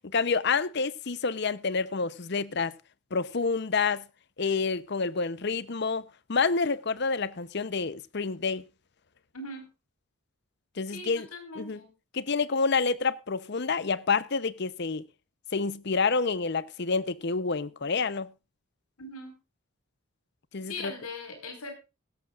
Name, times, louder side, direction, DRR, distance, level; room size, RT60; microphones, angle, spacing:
voice 1, 0.1-2.7 3.1-4.0 4.4-8.6 10.8-11.3 11.6-11.8 12.1-15.0 15.5-18.3 20.5-20.9, left 4 dB, 50° left, 0.7 m, -28 dB
voice 2, 9.3-9.7 10.9-11.9 19.0-19.4 20.6-21.7, left 2 dB, 85° left, 4.8 m, -40 dB
16.5 x 13.5 x 2.4 m
head